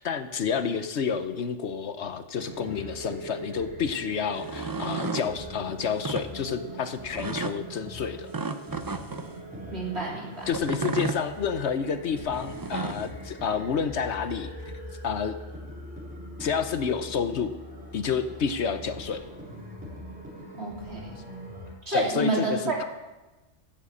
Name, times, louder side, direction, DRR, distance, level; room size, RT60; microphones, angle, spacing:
voice 1, 0.0-8.3 10.5-14.7 15.0-15.4 16.4-17.6 17.9-19.2 21.9-22.8, left 6 dB, 65° left, 10 dB, 1.1 m, -29 dB
sound 1, 2.4-21.7, equal, 5° right, 3.9 m, -41 dB
sound 2, 4.4-5.3 5.9-6.3 7.1-7.6 8.3-9.3 10.5-11.2 12.4-13.1, right 3 dB, 30° right, 0.4 m, -32 dB
voice 2, 9.7-10.5 20.5-21.2 21.9-22.7, right 2 dB, 60° right, -2 dB, 3.4 m, -29 dB
14.0 x 7.6 x 8.4 m, 1.1 s
omnidirectional pair, 1.3 m